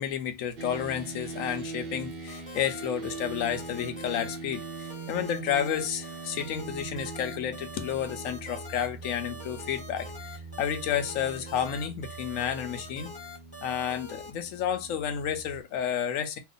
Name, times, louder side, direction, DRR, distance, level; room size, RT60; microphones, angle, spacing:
voice 1, 0.0-10.1 10.6-13.1 13.6-16.4, left 9 dB, 65° left, 0.9 m, -31 dB
sound 1, 0.6-15.6, right 4 dB, 65° right, 0.5 m, -42 dB
sound 2, 2.3-14.3, equal, 5° left, 0.8 m, -44 dB
2.9 x 2.4 x 3.8 m
omnidirectional pair, 1.8 m